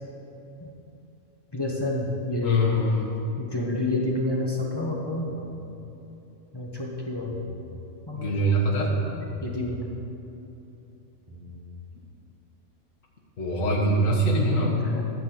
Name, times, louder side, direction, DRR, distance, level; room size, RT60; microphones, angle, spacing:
voice 1, 1.5-2.8 3.4-5.3 6.5-7.4 8.1-8.3 9.4-9.8 14.8-15.1, left 2 dB, 20° left, -3 dB, 1.0 m, -29 dB
voice 2, 2.4-3.1 8.1-9.0 13.4-14.8, right 1 dB, 65° left, -3 dB, 1.7 m, -23 dB
sound 1, 5.3-5.8 7.1-7.8 9.3-9.8 11.1-11.8, right 1 dB, 25° right, 1.7 m, -44 dB
12.5 x 4.4 x 7.7 m, 2.9 s
omnidirectional pair, 1.5 m